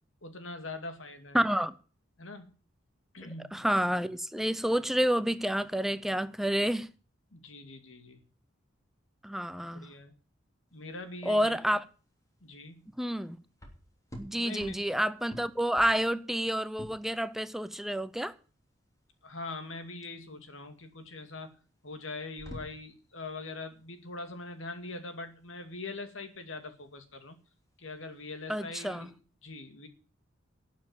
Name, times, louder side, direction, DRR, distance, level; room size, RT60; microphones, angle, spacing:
voice 1, 0.2-1.4 2.2-2.5 3.1-3.7 7.3-8.2 9.7-10.1 10.7-11.6 12.4-12.8 14.4-14.8 19.2-21.5 21.8-27.4 27.8-29.2 29.4-29.9, left 3 dB, 90° left, 2.3 m, -42 dB
voice 2, 1.3-1.7 3.5-6.9 9.2-9.9 11.3-11.8 13.0-13.4 14.2-18.3 28.5-29.1, equal, ahead, 0.6 m, -29 dB
sound 1, 10.7-28.9, equal, 15° left, 3.1 m, -52 dB
12.0 x 7.5 x 8.9 m
head